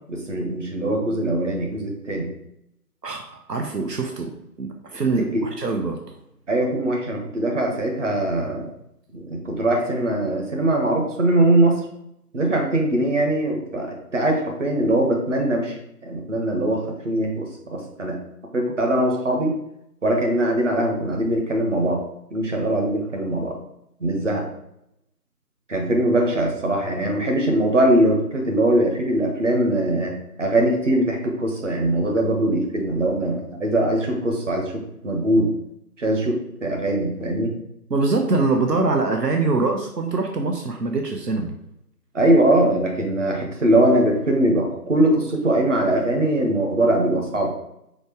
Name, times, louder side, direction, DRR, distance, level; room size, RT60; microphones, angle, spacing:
voice 1, 0.1-2.3 5.3-5.4 6.5-8.7 9.1-11.8 12.3-15.8 16.0-18.2 18.5-19.6 20.0-22.0 22.3-23.6 24.0-24.4 25.7-30.1 30.4-35.5 36.0-37.5 42.1-47.5, right 1 dB, 50° right, 1 dB, 1.7 m, -21 dB
voice 2, 3.0-4.3 4.6-6.0 37.9-41.5, right 3 dB, 85° right, 3 dB, 1.1 m, -23 dB
5.1 x 4.8 x 4.9 m, 0.79 s
figure-of-eight pair, 165°, 47 cm